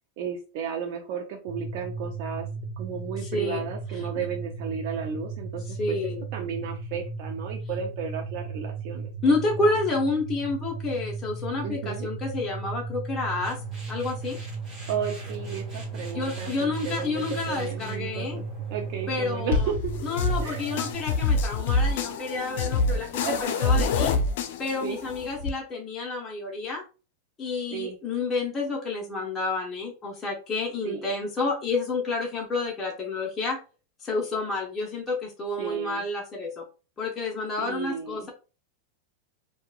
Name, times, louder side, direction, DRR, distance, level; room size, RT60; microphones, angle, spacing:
voice 1, 0.2-2.5 2.8-6.0 6.3-9.1 9.6-9.7 11.6-12.1 14.9-18.4 18.7-19.9 20.4-20.7 23.2-23.7 24.8-25.0 27.7-28.0 30.8-31.1 35.6-36.0 37.6-38.3, right 7 dB, 55° right, 2 dB, 0.5 m, -34 dB
sound 1, 1.5-21.0, right 4 dB, 85° right, 1.0 m, -36 dB
voice 2, 3.2-3.6 3.9-4.0 5.8-6.2 9.2-13.6 13.9-14.4 16.1-18.4 19.1-19.7 20.0-24.1 24.6-26.8 27.4-33.6 34.0-36.6 37.0-38.3, left 3 dB, 20° left, -2 dB, 0.7 m, -29 dB
sound 2, 13.2-19.8, right 2 dB, 20° right, 1.3 m, -46 dB
sound 3, 19.5-25.5, left 3 dB, 65° left, 0.4 m, -26 dB
2.8 x 2.2 x 2.3 m, 0.34 s
supercardioid pair, 130°, 0 cm